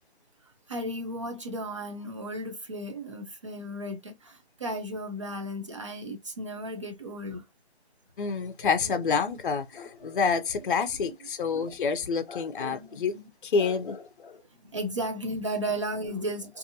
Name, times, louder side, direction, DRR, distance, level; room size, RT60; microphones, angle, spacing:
voice 1, 0.7-7.5 8.6-9.4 10.0-10.2 10.6-10.7 11.0-11.1 11.5-11.8 12.6-13.2 14.6-16.6, right 1 dB, 30° right, 0.5 m, -35 dB
voice 2, 8.2-13.1 13.4-14.4, left 5 dB, 50° left, 0.5 m, -28 dB
2.6 x 2.5 x 2.6 m
hypercardioid pair, 165°, 33 cm